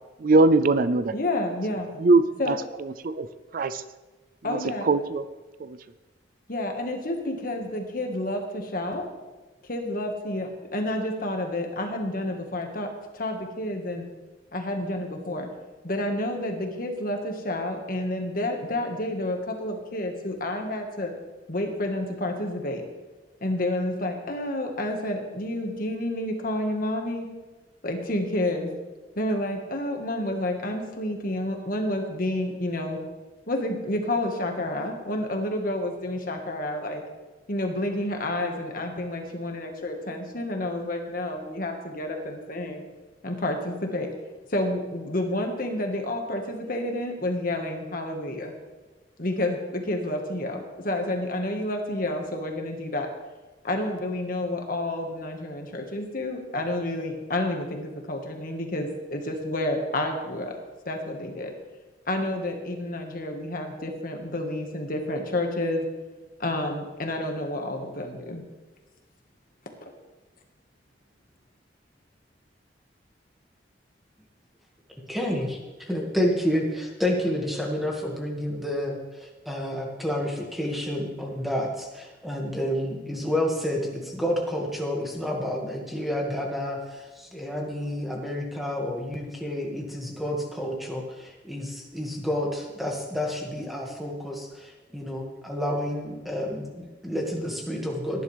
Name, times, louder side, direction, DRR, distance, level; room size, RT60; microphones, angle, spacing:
voice 1, 0.2-1.1 2.0-2.6 3.0-3.3 3.5-3.8 4.5-4.6 4.9-5.2 5.6-5.8, right 3 dB, 50° right, 13 dB, 0.4 m, -21 dB
voice 2, 1.1-1.9 2.4-2.6 4.4-5.0 6.5-9.1 9.6-12.9 13.1-14.1 14.5-15.5 15.8-21.1 21.5-22.8 23.4-27.3 27.8-28.7 29.1-33.0 33.5-37.0 37.5-42.9 43.2-44.1 44.5-48.5 49.2-53.1 53.6-60.6 60.8-61.5 62.1-65.8 66.4-68.4, left 1 dB, 50° left, 3 dB, 1.7 m, -29 dB
voice 3, 75.1-98.2, left 1 dB, ahead, -1 dB, 2.0 m, -29 dB
17.5 x 10.5 x 3.5 m, 1.2 s
head